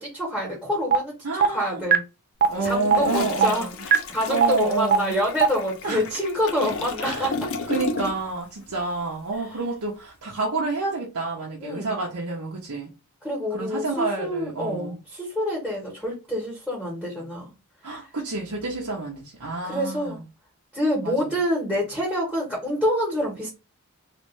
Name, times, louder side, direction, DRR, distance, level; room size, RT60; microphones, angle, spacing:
voice 1, 0.0-2.0 2.6-7.5 9.4-9.5 11.6-12.0 13.2-17.5 17.9-18.1 19.6-20.2 20.7-23.5, equal, 5° left, 1.4 m, -27 dB
sound 1, 0.9-1.0 1.4-1.5 1.9-2.0 2.4-2.5 2.9-3.0 3.4-3.5 3.9-4.0 4.4-4.5 4.9-5.0 5.4-5.5, right 8 dB, 45° right, 0.4 m, -15 dB
voice 2, 1.2-1.8 2.5-3.8 4.3-5.2 5.8-6.0 7.0-7.3 7.7-12.9 13.5-15.0 17.8-20.2 21.0-21.4, right 3 dB, 80° right, 0.9 m, -29 dB
Toilet flush, 2.4-8.4 8.7-8.9, left 3 dB, 65° left, 0.6 m, -34 dB
3.2 x 2.6 x 3.2 m
head